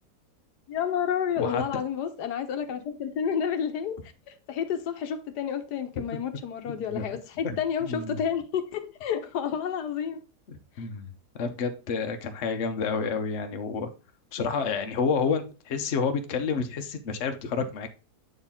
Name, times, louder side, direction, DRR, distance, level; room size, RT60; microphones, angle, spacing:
voice 1, 0.7-4.0 4.3-10.2 10.8-10.9, left 8 dB, 85° left, 1.4 m, -30 dB
voice 2, 7.8-8.2 10.5-13.9 14.3-17.9, left 5 dB, 50° left, 1.1 m, -29 dB
7.9 x 4.4 x 3.6 m
omnidirectional pair, 1.7 m